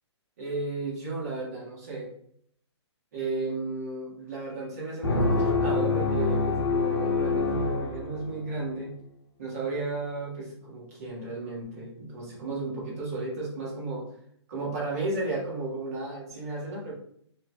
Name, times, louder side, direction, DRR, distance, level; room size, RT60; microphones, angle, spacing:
voice 1, 0.4-2.1 3.1-9.0 9.4-14.1 14.5-16.9, right 2 dB, 35° right, -6 dB, 1.4 m, -34 dB
sound 1, 5.0-8.6, left 3 dB, 65° left, 1.0 m, -26 dB
4.9 x 3.0 x 2.2 m, 0.66 s
hypercardioid pair, 180°, 15 cm